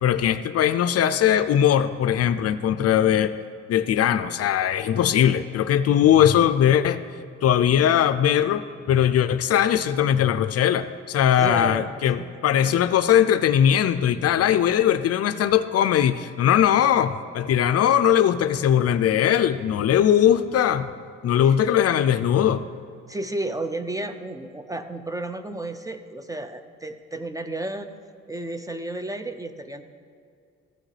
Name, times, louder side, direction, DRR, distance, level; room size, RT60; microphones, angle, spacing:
voice 1, 0.0-3.4 3.7-7.0 7.4-8.6 8.9-20.9 21.2-22.6, left 10 dB, 55° left, 11 dB, 0.4 m, -20 dB
voice 2, 11.3-11.9 21.4-21.6 23.1-27.9 28.3-29.8, right 2 dB, 10° right, 9 dB, 0.5 m, -32 dB
14.5 x 6.3 x 3.3 m, 2.3 s
cardioid pair, 90°, 30 cm